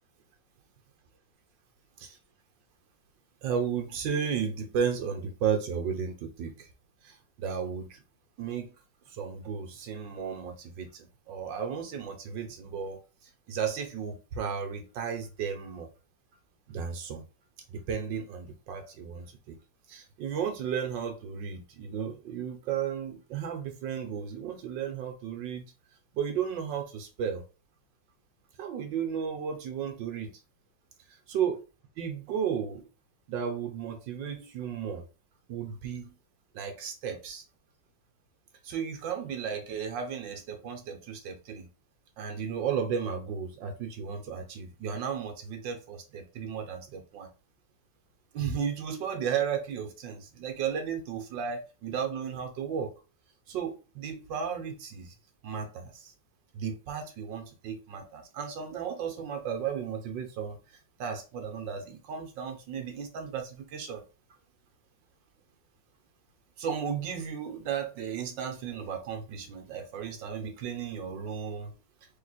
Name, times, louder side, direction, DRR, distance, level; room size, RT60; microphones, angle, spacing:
voice 1, 3.4-6.7 7.0-8.0 8.4-8.7 9.1-15.9 16.7-17.2 17.7-19.6 19.9-25.6 26.1-27.4 28.6-30.3 31.3-31.6 32.0-32.9 33.3-35.0 35.5-36.1 36.5-37.4 38.6-41.7 42.2-47.3 48.3-52.9 53.5-55.1 55.4-56.1 56.5-60.6 61.0-64.0 66.6-71.7, right 7 dB, 65° right, 1.5 m, -34 dB
3.8 x 2.9 x 4.0 m
omnidirectional pair, 2.3 m